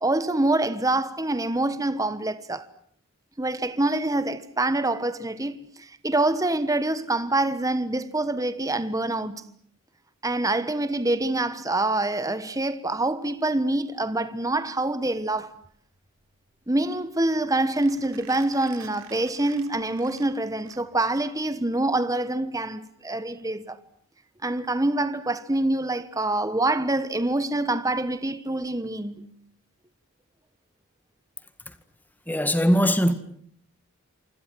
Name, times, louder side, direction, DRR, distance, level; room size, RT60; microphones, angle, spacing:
voice 1, 0.0-2.7 3.4-9.5 10.2-15.6 16.7-23.8 24.4-29.3, right 2 dB, 15° right, 1.2 m, -26 dB
Mechanisms, 15.3-21.2, right 7 dB, 75° right, 3.4 m, -50 dB
voice 2, 32.3-33.1, equal, 10° left, 1.8 m, -21 dB
27.5 x 26.0 x 7.7 m
head